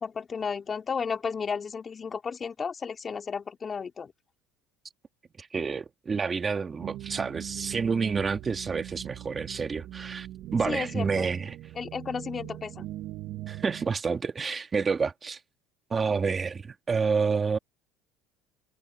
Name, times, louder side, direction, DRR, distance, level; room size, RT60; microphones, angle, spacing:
voice 1, 0.0-4.1 10.7-11.3 11.7-12.9, left 6 dB, 30° left, 3.3 m, -33 dB
voice 2, 5.4-10.3 10.5-11.6 13.5-15.4 15.9-17.6, right 5 dB, 25° right, 1.8 m, -29 dB
sound 1, 6.8-13.9, right 14 dB, 60° right, 1.4 m, -41 dB
open air
supercardioid pair, 105°, 0 cm